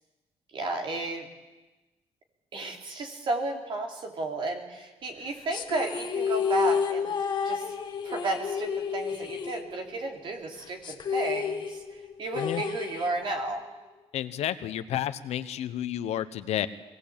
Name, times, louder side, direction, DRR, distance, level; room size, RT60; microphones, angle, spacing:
voice 1, 0.5-1.3 2.5-7.1 7.4-7.7 8.0-13.6, right 2 dB, 50° right, 4 dB, 3.2 m, -33 dB
sound 1, 5.5-10.2 10.4-10.5 10.8-13.5, left 6 dB, 40° left, 1.6 m, -31 dB
voice 2, 14.1-16.7, left 11 dB, 75° left, 13 dB, 1.1 m, -31 dB
23.0 x 18.0 x 8.8 m, 1.1 s
cardioid pair, 170°, 11 cm